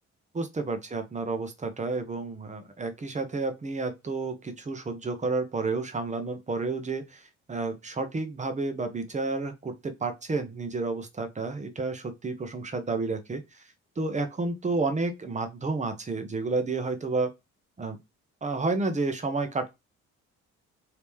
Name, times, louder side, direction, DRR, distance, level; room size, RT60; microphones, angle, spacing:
voice 1, 0.3-13.4 14.0-17.3 17.8-18.0 18.4-19.7, right 3 dB, 25° right, 0.8 m, -30 dB
3.1 x 2.9 x 3.5 m
cardioid pair, 90°, 30 cm